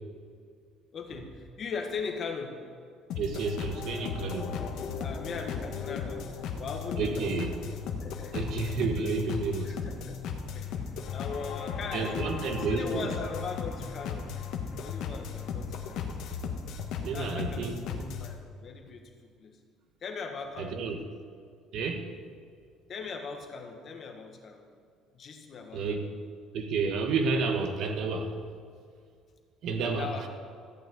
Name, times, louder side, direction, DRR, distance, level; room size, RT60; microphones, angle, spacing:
voice 1, 0.9-2.7 4.6-7.6 8.0-8.5 9.0-9.1 9.6-10.2 10.5-12.2 12.5-14.4 14.8-16.1 17.1-19.6 20.0-21.0 22.9-24.7 25.1-26.1 29.8-30.3, left 5 dB, 35° left, 4 dB, 1.4 m, -40 dB
sound 1, 3.1-18.3, left 6 dB, 65° left, 1.3 m, -36 dB
voice 2, 3.2-4.5 7.0-7.5 8.3-9.7 11.9-13.1 17.0-17.8 20.6-21.0 21.7-22.1 25.7-26.0 26.5-28.3 29.6-30.1, right 4 dB, 55° right, 5 dB, 1.3 m, -30 dB
14.5 x 5.9 x 9.1 m, 2.2 s
cardioid pair, 160°, 0 cm